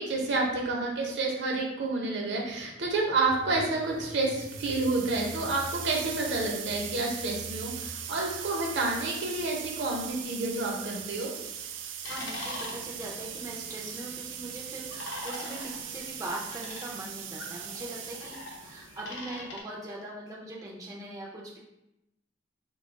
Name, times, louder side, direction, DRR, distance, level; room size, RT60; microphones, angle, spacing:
voice 1, 0.0-11.3, right 2 dB, 70° right, -1 dB, 0.7 m, -29 dB
sound 1, 3.2-13.1 13.4-13.5, right 2 dB, 40° left, 0.6 m, -48 dB
sound 2, 4.0-19.0, right 9 dB, 90° right, 0.3 m, -40 dB
voice 2, 11.8-21.6, right 1 dB, 20° right, -3 dB, 0.4 m, -41 dB
sound 3, 12.0-19.6, left 2 dB, 85° left, 0.7 m, -43 dB
2.8 x 2.3 x 3.9 m, 0.89 s
head